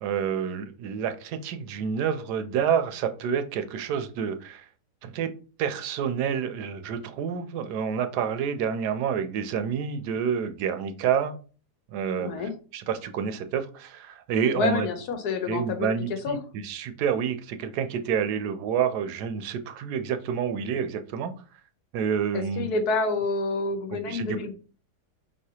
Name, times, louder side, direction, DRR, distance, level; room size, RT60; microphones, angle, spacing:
voice 1, 0.0-4.7 5.0-5.3 5.6-11.4 11.9-14.9 15.5-16.4 16.6-21.3 21.9-22.7 24.1-24.4, right 7 dB, 75° right, 10 dB, 1.1 m, -28 dB
voice 2, 12.2-12.5 14.5-16.4 22.3-24.5, left 3 dB, 70° left, 6 dB, 1.2 m, -28 dB
5.3 x 3.2 x 2.8 m, 0.37 s
omnidirectional pair, 1.8 m